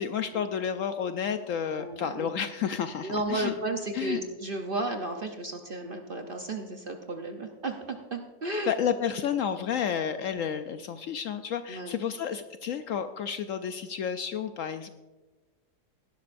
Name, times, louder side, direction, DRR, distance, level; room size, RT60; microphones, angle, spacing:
voice 1, 0.0-3.5 3.9-4.2 8.7-14.9, left 8 dB, 70° left, 9 dB, 0.8 m, -31 dB
voice 2, 1.8-2.3 3.0-8.7 11.7-11.9, right 2 dB, 45° right, 4 dB, 0.8 m, -33 dB
17.5 x 11.5 x 2.6 m, 1.2 s
omnidirectional pair, 1.7 m